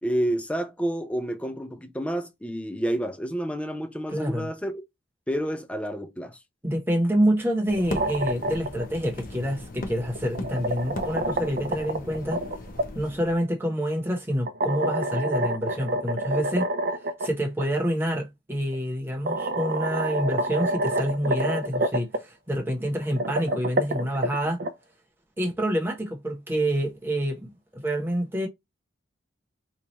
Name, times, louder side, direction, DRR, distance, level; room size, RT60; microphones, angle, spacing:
voice 1, 0.0-4.7 5.3-6.4, right 1 dB, 5° left, 0.5 m, -29 dB
voice 2, 4.1-4.5 6.6-12.4 12.9-16.7 17.2-24.6 25.4-28.5, equal, 10° right, 1.0 m, -27 dB
sound 1, 7.7-13.3, left 2 dB, 45° left, 0.7 m, -38 dB
sound 2, 7.7-8.9 10.0-12.9 14.5-17.3 17.6-17.7 18.7-18.8 19.3-22.2 23.0-24.7, right 1 dB, 50° right, 0.5 m, -28 dB
3.1 x 2.4 x 4.1 m
head